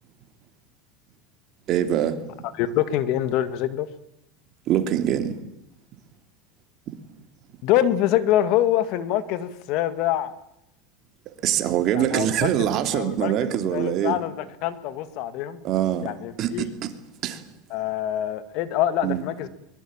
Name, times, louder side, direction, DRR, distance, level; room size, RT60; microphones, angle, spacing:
voice 1, 1.7-2.2 4.7-5.3 11.4-14.2 15.6-16.1 16.4-16.9 17.2-17.4 19.0-19.2, right 10 dB, 45° right, 3.0 m, -23 dB
voice 2, 2.6-3.9 7.6-10.3 11.9-13.3 13.7-15.6 16.0-16.6 17.7-19.5, left 12 dB, 55° left, 2.1 m, -25 dB
23.5 x 21.5 x 8.9 m
supercardioid pair, 135°, 0 cm